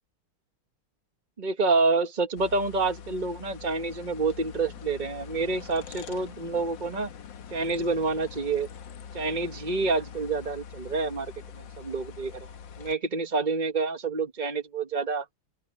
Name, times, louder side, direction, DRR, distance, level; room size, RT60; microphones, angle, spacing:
voice 1, 1.4-7.1 7.5-8.7 9.1-11.3 11.8-12.3 12.8-15.2, right 3 dB, 35° right, 0.8 m, -28 dB
sound 1, 2.4-12.9, left 7 dB, 60° left, 1.8 m, -44 dB
open air
omnidirectional pair, 2.4 m